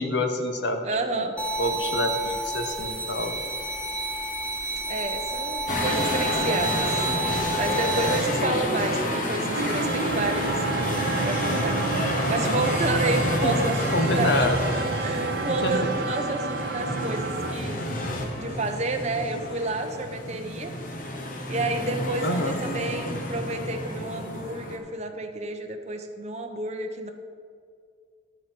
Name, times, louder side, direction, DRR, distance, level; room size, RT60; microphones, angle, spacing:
voice 1, 0.0-0.9 1.2-1.3 1.6-3.3 13.4-14.6 15.4-15.9 22.2-22.6, left 1 dB, 65° left, 5 dB, 1.1 m, -27 dB
voice 2, 0.8-1.4 4.9-7.0 7.6-13.7 14.1-14.5 15.0-17.8 18.4-20.7 21.5-27.1, right 2 dB, 35° right, 4 dB, 0.9 m, -30 dB
sound 1, 1.4-8.2, right 2 dB, 5° left, 1.0 m, -30 dB
sound 2, 5.7-24.8, left 1 dB, 45° left, 1.2 m, -29 dB
sound 3, 9.5-17.5, right 5 dB, 55° right, 0.6 m, -31 dB
12.0 x 8.0 x 4.6 m, 2.3 s
head